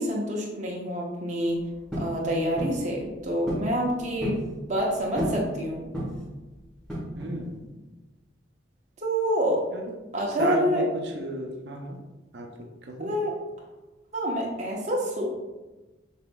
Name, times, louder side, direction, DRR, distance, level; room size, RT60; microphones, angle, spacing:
voice 1, 0.0-1.6 2.0-4.4 4.7-5.9 9.0-9.6 10.1-10.8 13.0-13.3 14.1-15.3, equal, 40° right, -2 dB, 0.9 m, -27 dB
sound 1, 1.9-2.2 2.6-2.8 3.5-3.7 4.0-4.5 5.2-5.5 5.9-6.3 6.9-7.4, equal, 5° left, 1.1 m, -31 dB
voice 2, 7.1-7.6 9.7-9.9 10.3-10.9 11.1-12.0 12.3-12.5 12.8-13.1, right 1 dB, 65° right, 2 dB, 0.6 m, -33 dB
5.9 x 3.4 x 2.2 m, 1.1 s
head